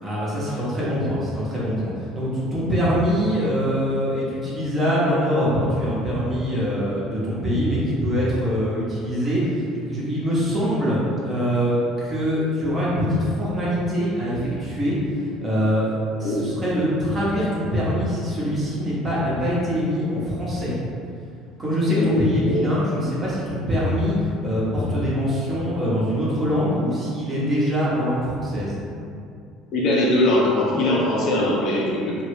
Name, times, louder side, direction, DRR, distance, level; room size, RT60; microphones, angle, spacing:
voice 1, 0.0-15.0 15.4-15.9 16.2-20.8 21.6-24.2 24.4-28.8, equal, 30° right, -8 dB, 1.1 m, -23 dB
voice 2, 29.7-32.2, left 1 dB, 55° left, -4 dB, 0.5 m, -21 dB
2.8 x 2.1 x 3.3 m, 2.5 s
figure-of-eight pair, 60°, 0 cm